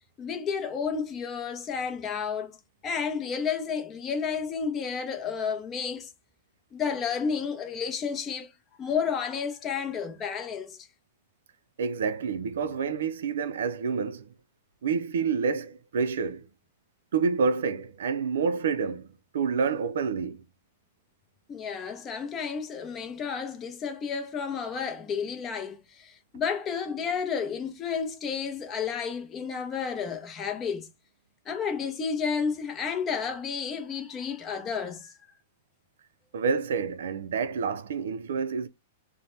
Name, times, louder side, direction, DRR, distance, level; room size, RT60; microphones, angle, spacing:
voice 1, 0.2-2.6 2.8-6.1 6.7-8.5 8.8-10.8 21.5-30.9 31.5-35.1, left 6 dB, 20° left, 0.6 m, -31 dB
voice 2, 11.8-14.3 14.8-16.5 17.1-19.1 19.3-20.4 36.3-38.7, right 5 dB, 85° right, 0.4 m, -28 dB
2.7 x 2.1 x 3.1 m
hypercardioid pair, 150°, 0 cm